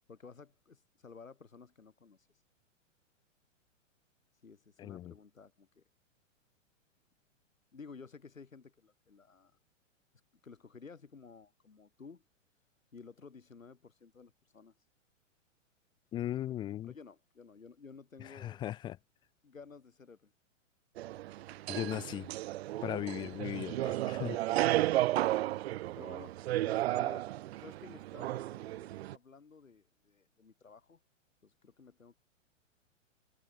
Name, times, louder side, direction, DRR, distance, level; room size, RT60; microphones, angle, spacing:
voice 1, 0.1-2.3 4.4-5.8 7.7-9.5 10.4-12.2 12.9-14.7 16.8-18.6 19.4-20.3 25.0-25.2 26.0-27.3 27.6-31.0 31.4-32.2, left 5 dB, 85° left, 5.4 m, -53 dB
voice 2, 4.8-5.1 16.1-16.9 18.3-19.0 21.7-22.3 22.8-24.4 24.7-24.8, left 12 dB, 10° left, 0.4 m, -38 dB
sound 1, 21.0-29.2, right 15 dB, 50° right, 1.4 m, -33 dB
hypercardioid pair, 115°, 39 cm